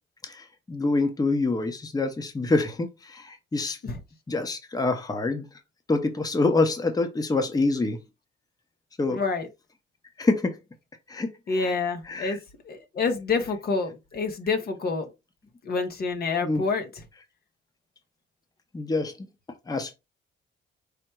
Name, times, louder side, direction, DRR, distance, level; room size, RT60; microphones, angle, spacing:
voice 1, 0.2-3.9 4.3-5.5 5.9-8.0 9.0-9.2 10.2-10.6 11.1-11.8 12.0-12.4 16.4-16.6 18.7-19.3 19.7-19.9, left 3 dB, 20° left, 0.9 m, -26 dB
voice 2, 9.1-9.5 11.5-12.4 12.6-15.1 15.6-16.9, left 4 dB, 50° left, 1.0 m, -27 dB
5.0 x 2.2 x 4.5 m
cardioid pair, 90°, 20 cm